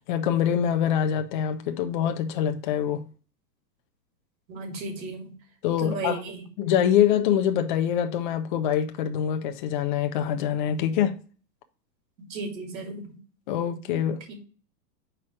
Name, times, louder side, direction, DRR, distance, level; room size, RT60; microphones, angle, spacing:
voice 1, 0.1-3.0 5.6-6.2 6.6-11.2 13.5-14.2, left 9 dB, 30° left, 0.5 m, -24 dB
voice 2, 4.5-5.3 5.8-6.4 12.3-13.2, right 3 dB, 85° right, 2.8 m, -34 dB
4.9 x 4.4 x 6.1 m
supercardioid pair, 160°, 50 cm